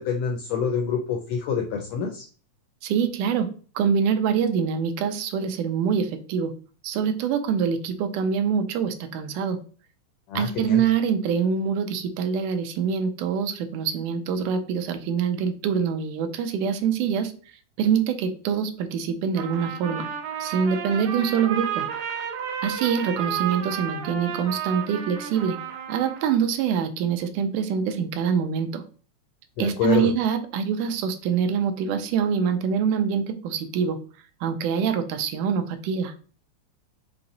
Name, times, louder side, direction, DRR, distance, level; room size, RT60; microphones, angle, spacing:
voice 1, 0.0-2.2 10.3-10.8 29.6-30.1, left 6 dB, 85° left, 3 dB, 1.5 m, -26 dB
voice 2, 2.8-3.5 3.8-6.5 6.8-9.6 10.4-17.3 17.8-20.1 20.4-21.9 22.6-25.6 25.9-28.8 29.6-34.0 34.4-36.1, right 7 dB, 80° right, 7 dB, 2.0 m, -25 dB
Trumpet, 19.3-26.5, right 8 dB, 65° right, 1.8 m, -32 dB
5.7 x 2.0 x 3.8 m, 0.39 s
omnidirectional pair, 3.6 m